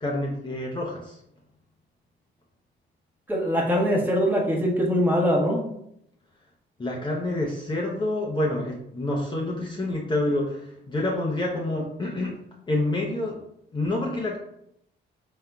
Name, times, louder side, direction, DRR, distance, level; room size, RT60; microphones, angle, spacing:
voice 1, 0.0-1.2 6.8-12.3 12.7-13.4 13.7-14.4, left 1 dB, 25° left, -2 dB, 0.7 m, -27 dB
voice 2, 3.3-5.6, equal, 10° right, -2 dB, 1.1 m, -22 dB
4.2 x 3.6 x 2.3 m, 0.74 s
cardioid pair, 90°, 20 cm